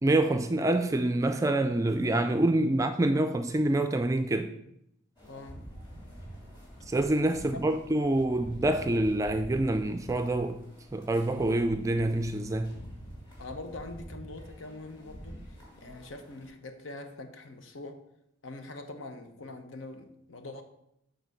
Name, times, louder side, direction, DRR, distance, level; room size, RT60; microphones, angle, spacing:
voice 1, 0.0-4.5 6.9-10.6 10.9-12.8, right 1 dB, 15° right, 0.3 m, -26 dB
sound 1, 5.2-16.5, equal, 25° left, 2.6 m, -47 dB
voice 2, 5.3-5.7 7.4-7.6 13.4-18.0 18.4-20.6, left 2 dB, 90° left, 0.9 m, -43 dB
8.1 x 3.9 x 6.5 m
head